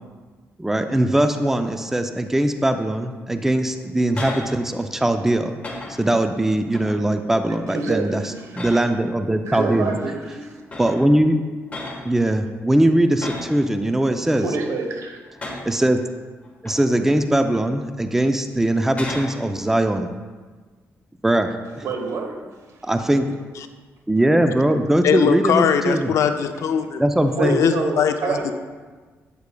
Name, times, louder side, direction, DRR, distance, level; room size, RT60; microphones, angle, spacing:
voice 1, 0.6-5.5 6.0-8.2 8.6-9.9 10.8-11.4 12.0-14.5 15.7-16.0 16.6-20.1 21.2-21.8 22.8-23.4 24.1-26.1 27.0-27.6, right 1 dB, 5° right, 7 dB, 0.4 m, -20 dB
sound 1, 3.7-4.5 4.9-5.2 5.6-6.2 6.7-7.1 7.6-7.9 8.5-9.1 10.1-10.2 10.7-11.1 11.7-12.1 13.2-13.6 14.1-14.7 15.2-15.8 16.4-17.2 17.7-17.9 18.7-19.4 22.8-23.2, left 2 dB, 25° left, 1.3 m, -35 dB
voice 2, 7.7-8.6 9.4-10.6 14.4-15.2 21.8-22.5 27.4-28.5, right 4 dB, 75° right, 3 dB, 1.0 m, -27 dB
voice 3, 25.0-27.0 27.4-28.1, left 7 dB, 75° left, 8 dB, 0.4 m, -20 dB
8.2 x 8.1 x 2.3 m, 1.4 s
cardioid pair, 105°, 5 cm